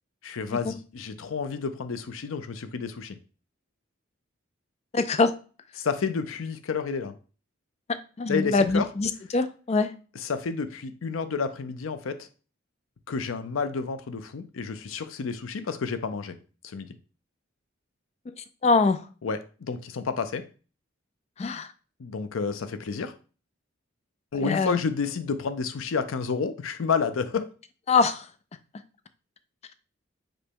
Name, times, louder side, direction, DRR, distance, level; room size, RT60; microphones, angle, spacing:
voice 1, 0.2-3.2 5.8-7.1 8.3-8.9 10.1-12.3 13.1-16.4 16.6-16.9 19.2-20.4 22.0-23.2 24.3-27.5, left 5 dB, 85° left, 0.5 m, -30 dB
voice 2, 4.9-5.3 8.2-9.9 18.6-19.0 21.4-21.7 24.4-24.8 27.9-28.3, left 4 dB, 35° left, 0.3 m, -23 dB
5.1 x 2.2 x 4.5 m
head